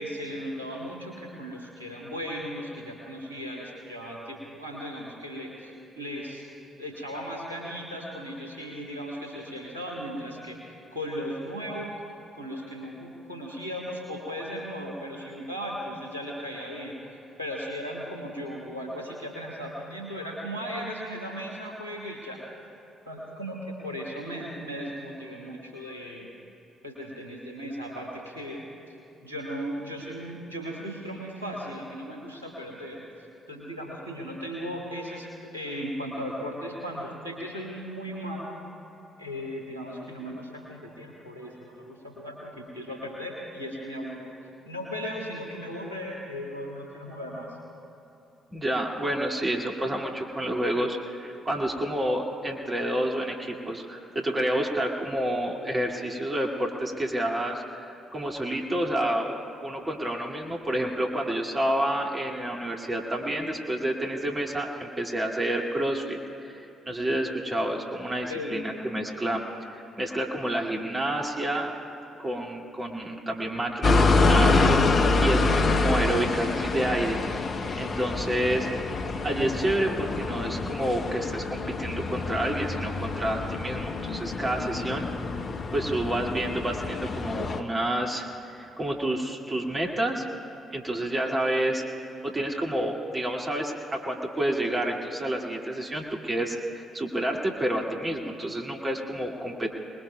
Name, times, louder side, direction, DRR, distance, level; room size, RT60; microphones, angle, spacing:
voice 1, 0.0-6.5 6.7-11.9 12.3-22.4 23.0-26.3 26.8-28.6 29.2-33.0 33.5-38.6 39.2-44.3 44.6-47.6 68.3-68.6, equal, 90° right, -3 dB, 1.7 m, -37 dB
voice 2, 48.5-69.4 69.7-71.7 72.2-77.2 77.8-78.7 79.2-85.1 85.7-90.3 90.7-91.9 92.2-99.7, right 1 dB, 25° right, 0 dB, 2.3 m, -29 dB
sound 1, 73.8-87.6, left 3 dB, 45° left, 1.0 m, -26 dB
28.0 x 20.0 x 2.3 m, 2.9 s
figure-of-eight pair, 45°, 0 cm